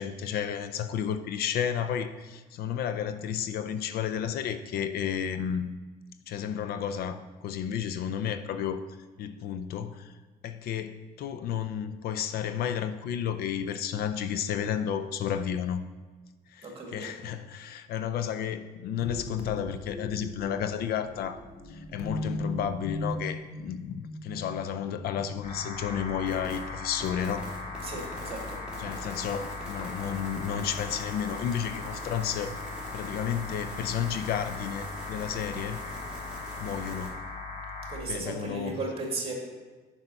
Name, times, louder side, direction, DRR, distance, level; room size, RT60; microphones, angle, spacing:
voice 1, 0.0-5.7 6.3-8.8 9.2-10.1 10.4-15.9 16.5-21.4 21.7-27.5 28.8-32.5 32.9-35.8 36.6-37.2 38.1-38.8, left 8 dB, 65° left, 11 dB, 0.5 m, -32 dB
voice 2, 16.6-17.1 27.8-28.6 37.9-39.3, right 3 dB, 35° right, 0 dB, 2.0 m, -35 dB
sound 1, 18.9-25.7 26.1-26.6 27.2-27.3, left 2 dB, 90° left, 1.1 m, -38 dB
sound 2, 25.4-38.0, left 3 dB, 50° left, 1.5 m, -39 dB
sound 3, 26.3-26.6 27.0-37.1, right 1 dB, 5° right, 2.5 m, -44 dB
6.2 x 5.6 x 5.3 m, 1.3 s
cardioid pair, 110°, 17 cm